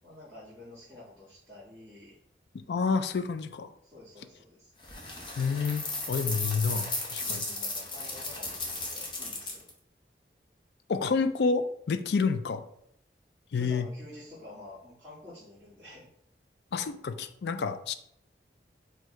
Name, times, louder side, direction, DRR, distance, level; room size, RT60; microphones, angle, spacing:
voice 1, 0.0-2.2 3.8-4.7 7.2-9.6 13.5-16.1, left 1 dB, 5° left, -16 dB, 1.8 m, -49 dB
voice 2, 2.5-3.7 5.4-7.4 10.9-12.6 13.5-13.9 16.7-17.9, left 5 dB, 75° left, 10 dB, 0.4 m, -29 dB
sound 1, 4.8-9.7, left 2 dB, 25° left, 0.8 m, -35 dB
4.6 x 2.6 x 4.3 m, 0.71 s
head